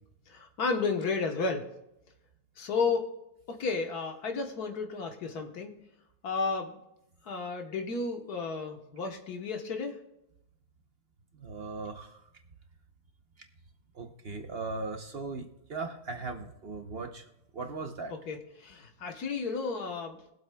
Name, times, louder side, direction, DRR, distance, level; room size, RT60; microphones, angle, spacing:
voice 1, 0.3-1.7 2.6-3.1 3.5-5.8 6.2-6.8 7.2-10.0 18.1-20.2, left 4 dB, 85° left, 4 dB, 1.7 m, -32 dB
voice 2, 11.4-12.2 14.0-17.2 17.5-18.1, right 3 dB, 50° right, 5 dB, 0.9 m, -38 dB
21.0 x 7.8 x 2.3 m, 0.84 s
omnidirectional pair, 1.6 m